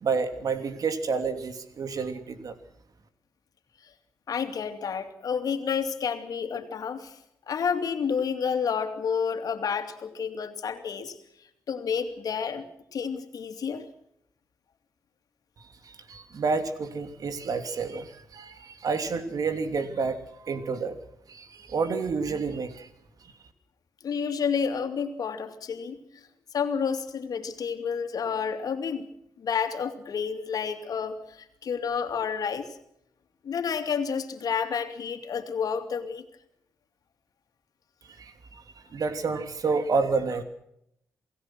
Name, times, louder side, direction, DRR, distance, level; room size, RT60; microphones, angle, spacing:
voice 1, 0.0-2.5 15.8-20.2 20.4-21.0 21.3-22.9 23.2-23.3 38.0-38.6 38.9-40.4, right 4 dB, 65° right, 9 dB, 2.9 m, -29 dB
voice 2, 4.3-7.2 7.5-11.2 11.7-12.6 12.9-13.9 24.0-26.3 26.5-29.1 29.4-32.8 33.4-36.2, left 6 dB, 70° left, 7 dB, 2.8 m, -30 dB
28.5 x 17.5 x 6.1 m, 0.76 s
supercardioid pair, 50°, 7 cm